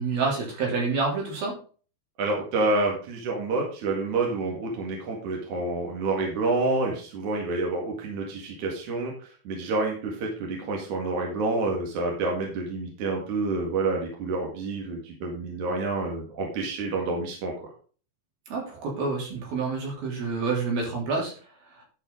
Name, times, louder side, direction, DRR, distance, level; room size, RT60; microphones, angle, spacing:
voice 1, 0.0-1.5 18.5-21.3 21.8-21.9, right 4 dB, 75° right, -2 dB, 5.0 m, -28 dB
voice 2, 2.2-17.7, right 3 dB, 55° right, -1 dB, 3.1 m, -28 dB
11.5 x 5.7 x 3.8 m, 0.39 s
omnidirectional pair, 4.3 m